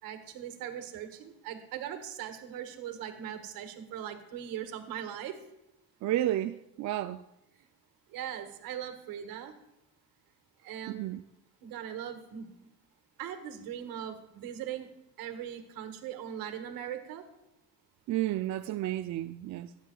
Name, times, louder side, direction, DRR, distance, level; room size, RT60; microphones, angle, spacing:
voice 1, 0.0-5.4 7.5-7.7 8.1-9.5 10.6-11.1 11.6-12.7 13.2-14.9 15.2-17.3, right 10 dB, 75° right, 1.6 m, -40 dB
voice 2, 6.0-7.2 10.9-11.2 18.1-19.7, right 14 dB, 50° right, 0.5 m, -31 dB
19.0 x 9.3 x 2.4 m
cardioid pair, 100°, 36 cm